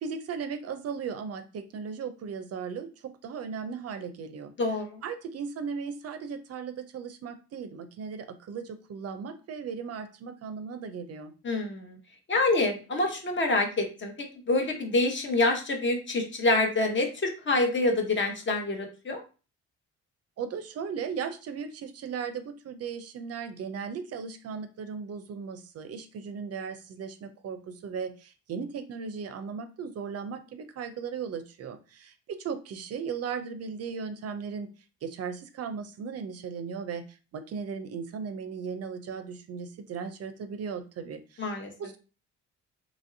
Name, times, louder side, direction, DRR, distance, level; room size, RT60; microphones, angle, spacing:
voice 1, 0.0-4.5 5.0-11.3 20.4-34.7 35.0-42.0, right 6 dB, 55° right, 9 dB, 0.5 m, -37 dB
voice 2, 4.6-5.0 11.4-12.0 12.3-19.2 41.4-41.7, left 2 dB, 40° left, 3 dB, 0.9 m, -27 dB
3.0 x 2.6 x 2.6 m, 0.34 s
cardioid pair, 90°, 30 cm